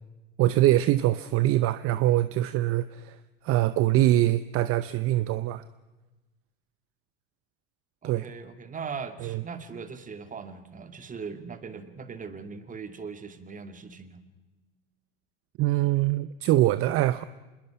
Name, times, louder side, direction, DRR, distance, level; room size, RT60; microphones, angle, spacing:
voice 1, 0.4-3.2 3.4-5.6 8.0-8.3 9.2-9.4 15.6-17.2, right 15 dB, 50° right, 0.8 m, -23 dB
voice 2, 8.0-14.2, right 5 dB, 25° right, 2.3 m, -40 dB
26.5 x 21.0 x 5.8 m
hypercardioid pair, 90°, 30 cm